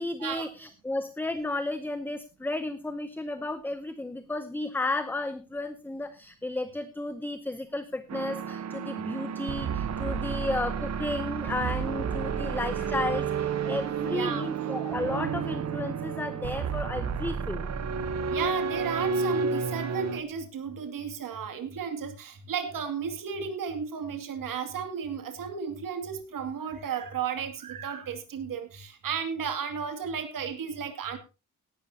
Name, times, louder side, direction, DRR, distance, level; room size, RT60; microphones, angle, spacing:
voice 1, 0.0-17.7, left 2 dB, 5° left, 11 dB, 0.7 m, -33 dB
sound 1, 8.1-20.2, right 6 dB, 55° right, 1.1 m, -31 dB
voice 2, 14.1-14.4 18.3-31.2, right 7 dB, 80° right, 7 dB, 2.5 m, -34 dB
17.5 x 12.0 x 2.8 m, 0.30 s
wide cardioid pair, 175°, 33 cm